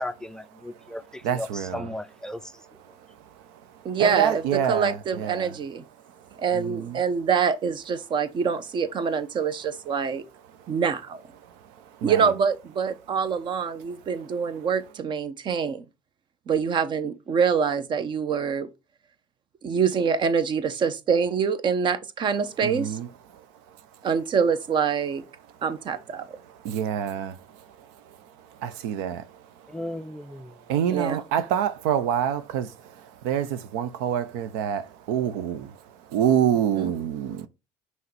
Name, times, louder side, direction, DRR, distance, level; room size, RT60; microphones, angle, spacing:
voice 1, 0.0-2.6 29.7-30.6, left 1 dB, 5° left, 0.4 m, -36 dB
voice 2, 1.2-1.9 4.0-5.6 6.5-7.0 12.0-12.3 22.6-23.1 26.5-27.4 28.6-29.3 30.7-35.8 36.1-37.5, right 9 dB, 80° right, 0.5 m, -26 dB
voice 3, 3.8-5.8 6.4-10.2 10.7-11.2 12.0-15.8 16.5-18.7 19.6-23.0 24.0-25.2 25.6-26.4 30.9-31.2 36.8-36.9, right 6 dB, 45° right, 0.8 m, -25 dB
5.5 x 3.2 x 5.3 m
supercardioid pair, 75°, 11 cm